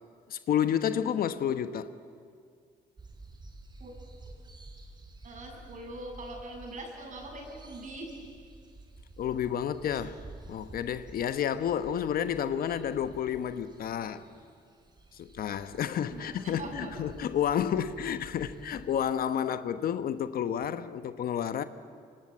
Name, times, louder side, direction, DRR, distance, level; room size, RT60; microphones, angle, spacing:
voice 1, 0.3-1.9 9.2-10.2 10.5-14.2 15.1-21.6, left 9 dB, 60° left, 1.2 m, -30 dB
sound 1, 3.0-19.1, right 2 dB, 25° right, 4.2 m, -51 dB
voice 2, 5.2-8.2 16.1-17.1, right 1 dB, 50° right, 7.3 m, -42 dB
26.0 x 23.5 x 8.6 m
cardioid pair, 90°, 17 cm